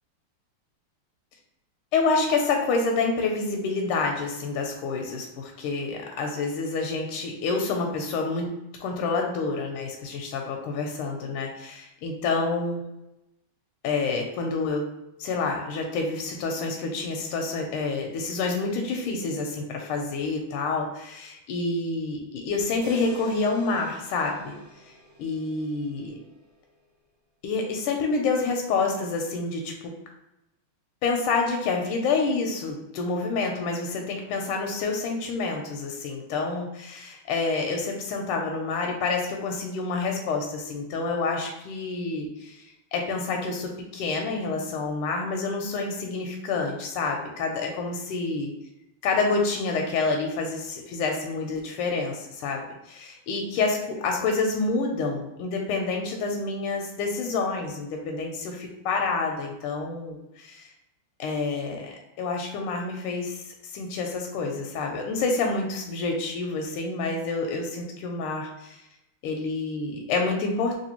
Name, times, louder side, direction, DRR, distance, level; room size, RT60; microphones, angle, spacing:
voice 1, 1.9-8.5 8.8-12.8 13.8-14.9 15.2-24.6 25.2-26.2 27.4-29.9 31.0-42.6 42.9-48.5 49.0-60.7 61.2-63.4 63.7-68.7 69.2-70.7, left 3 dB, 85° left, 2 dB, 1.5 m, -28 dB
sound 1, 22.8-26.9, right 3 dB, 50° right, 1.1 m, -46 dB
3.3 x 2.9 x 2.9 m, 0.90 s
omnidirectional pair, 2.4 m